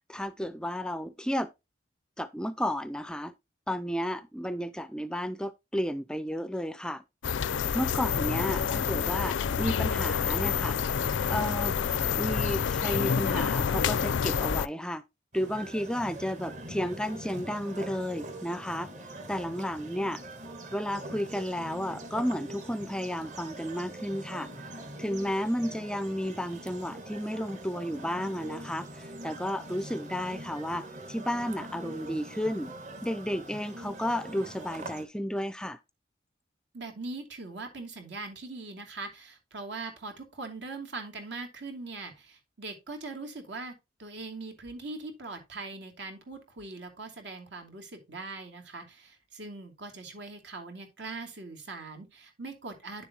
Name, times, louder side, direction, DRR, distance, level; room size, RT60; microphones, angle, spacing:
voice 1, 0.1-1.5 2.2-3.3 3.7-7.0 7.7-10.8 11.3-11.8 12.2-15.0 15.3-18.9 19.3-20.2 20.7-24.5 25.0-32.7 33.0-35.8, equal, 5° left, 0.4 m, -32 dB
sound 1, 7.2-14.7, left 7 dB, 80° left, 0.4 m, -28 dB
sound 2, 15.3-35.0, right 1 dB, 40° right, 1.6 m, -43 dB
voice 2, 36.7-53.0, right 3 dB, 70° right, 2.6 m, -41 dB
10.0 x 7.1 x 2.8 m
head